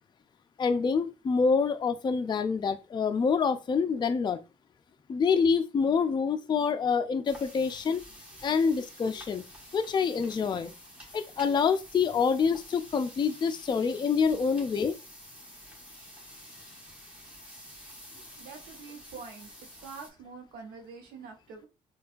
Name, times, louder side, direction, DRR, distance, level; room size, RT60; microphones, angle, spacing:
voice 1, 0.6-4.4 5.1-8.0 8.4-9.4 9.7-10.7 11.1-14.9, left 5 dB, 30° left, 0.4 m, -26 dB
sound 1, 7.2-20.1, equal, 10° right, 1.3 m, -49 dB
voice 2, 18.4-19.5 19.8-21.7, right 5 dB, 80° right, 0.8 m, -45 dB
4.2 x 2.3 x 2.5 m
supercardioid pair, 60°, 15 cm